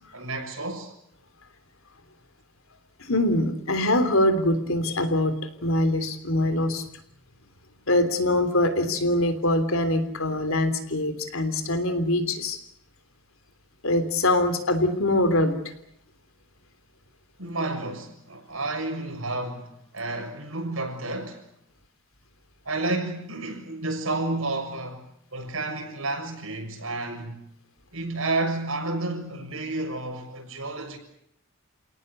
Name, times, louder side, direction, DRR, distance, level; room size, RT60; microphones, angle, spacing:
voice 1, 0.1-0.9 17.4-21.4 22.7-25.0 25.3-27.4 27.9-31.0, right 2 dB, 75° right, 6.9 m, -31 dB
voice 2, 3.0-6.8 7.9-12.6 13.8-15.6, left 1 dB, 70° left, 3.4 m, -23 dB
29.0 x 18.5 x 8.3 m
head